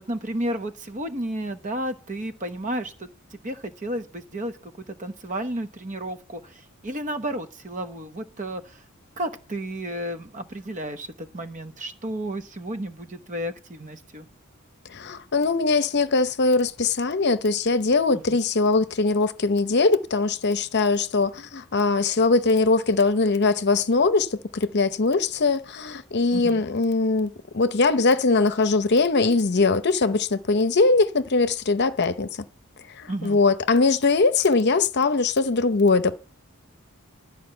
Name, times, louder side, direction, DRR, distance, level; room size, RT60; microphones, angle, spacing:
voice 1, 0.1-3.1 3.4-8.8 9.2-14.3 18.1-18.4 26.3-26.6 33.1-33.4, right 1 dB, 35° right, 1.0 m, -32 dB
voice 2, 14.9-32.3 33.0-36.2, left 3 dB, 50° left, 0.7 m, -21 dB
12.5 x 5.2 x 7.8 m
head